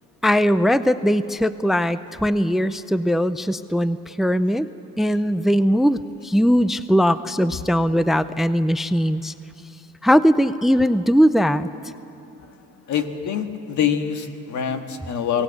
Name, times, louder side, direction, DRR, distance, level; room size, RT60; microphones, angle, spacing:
voice 1, 0.2-4.7 5.0-9.3 10.0-11.7, equal, ahead, 13 dB, 0.5 m, -20 dB
voice 2, 12.9-15.4, left 8 dB, 70° left, 6 dB, 1.8 m, -25 dB
24.5 x 17.5 x 8.3 m, 3.0 s
cardioid pair, 90°, 30 cm